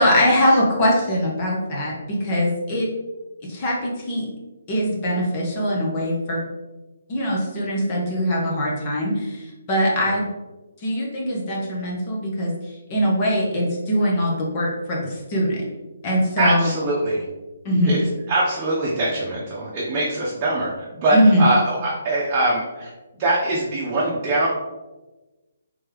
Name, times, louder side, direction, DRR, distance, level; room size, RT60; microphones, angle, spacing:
voice 1, 0.0-2.9 3.5-4.3 4.7-6.4 7.1-10.3 10.8-12.5 12.9-15.7 16.0-16.7 17.6-18.0 21.1-21.4, equal, 30° left, -4 dB, 1.0 m, -22 dB
voice 2, 16.4-17.2 17.9-18.0 18.3-24.5, right 2 dB, 30° right, -6 dB, 0.8 m, -23 dB
3.5 x 3.2 x 3.5 m, 1.1 s
hypercardioid pair, 150°, 0 cm